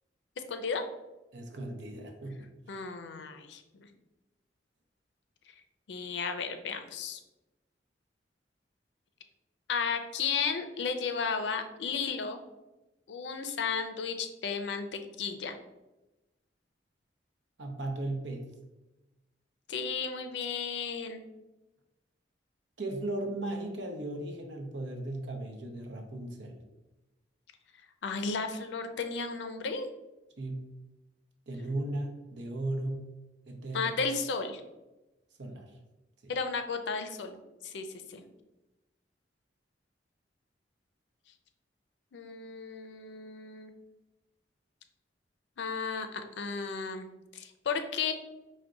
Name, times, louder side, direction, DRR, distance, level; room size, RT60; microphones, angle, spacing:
voice 1, 0.5-0.8 2.7-3.9 5.5-5.6 5.9-7.2 9.7-12.4 13.1-15.6 19.7-21.2 28.0-29.9 33.7-34.6 36.3-37.4 37.6-38.2 42.1-43.7 45.6-47.1 47.3-48.1, left 5 dB, 70° left, 7 dB, 0.4 m, -34 dB
voice 2, 1.3-2.8 17.6-18.5 22.8-26.6 30.4-30.7 31.5-33.1 33.5-34.0 35.4-35.7 36.2-36.3, right 1 dB, 85° right, 4 dB, 0.7 m, -36 dB
4.6 x 2.2 x 3.7 m, 1.0 s
head